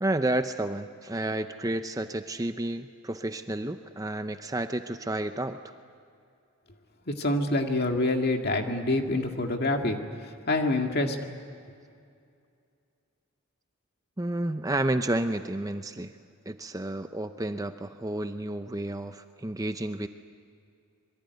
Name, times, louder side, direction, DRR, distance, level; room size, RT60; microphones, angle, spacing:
voice 1, 0.0-5.7 14.2-16.1 16.5-20.1, right 1 dB, 15° right, 8 dB, 0.6 m, -31 dB
voice 2, 7.1-11.2, left 2 dB, 45° left, 4 dB, 2.1 m, -27 dB
26.0 x 22.5 x 9.5 m, 2.4 s
head